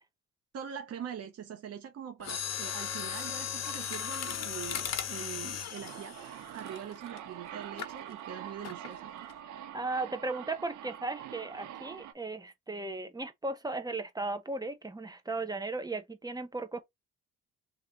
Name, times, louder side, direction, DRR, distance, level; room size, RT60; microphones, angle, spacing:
voice 1, 0.5-6.2 6.5-9.1, right 8 dB, 55° right, 0.9 m, -43 dB
Mechanisms, 2.2-7.2 7.8-8.0 8.6-9.0 9.3-9.4, left 8 dB, 60° left, 1.1 m, -37 dB
sound 1, 5.7-12.1, right 10 dB, 80° right, 0.8 m, -45 dB
voice 2, 9.7-16.8, right 3 dB, 15° right, 0.9 m, -36 dB
3.2 x 3.0 x 3.7 m
cardioid pair, 90°, 30 cm